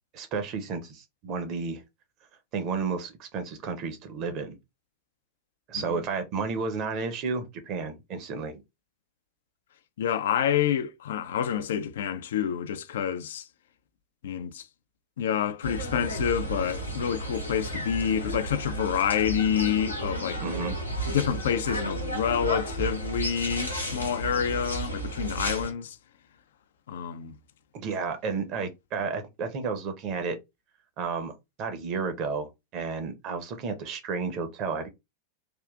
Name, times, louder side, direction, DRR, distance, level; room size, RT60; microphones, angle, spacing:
voice 1, 0.1-1.8 2.5-4.6 5.7-8.6 20.4-20.8 27.7-30.4 31.0-31.3 31.6-34.9, right 5 dB, 40° right, 0.8 m, -32 dB
voice 2, 10.0-13.5 14.2-14.7 15.2-20.4 21.1-26.0 26.9-27.4, left 9 dB, 60° left, 0.3 m, -28 dB
sound 1, 15.6-25.7, right 1 dB, 85° left, 0.9 m, -33 dB
3.5 x 2.4 x 2.4 m
figure-of-eight pair, 90°, 0 cm